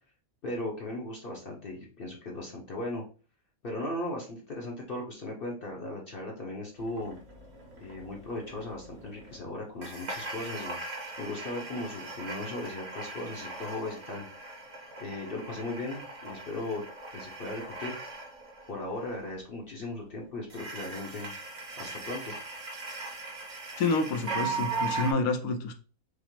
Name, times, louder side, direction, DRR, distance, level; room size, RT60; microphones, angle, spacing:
voice 1, 0.4-3.0 3.6-7.2 7.8-10.8 11.2-14.3 15.0-16.8 17.1-18.0 18.7-21.3 21.8-22.3, left 2 dB, 45° left, -1 dB, 0.8 m, -37 dB
sound 1, 6.8-9.4 9.8-19.3 20.5-25.1, right 4 dB, 50° right, 1.4 m, -39 dB
voice 2, 23.8-25.7, left 3 dB, 75° left, 6 dB, 1.1 m, -28 dB
5.0 x 2.0 x 2.9 m, 0.38 s
omnidirectional pair, 1.5 m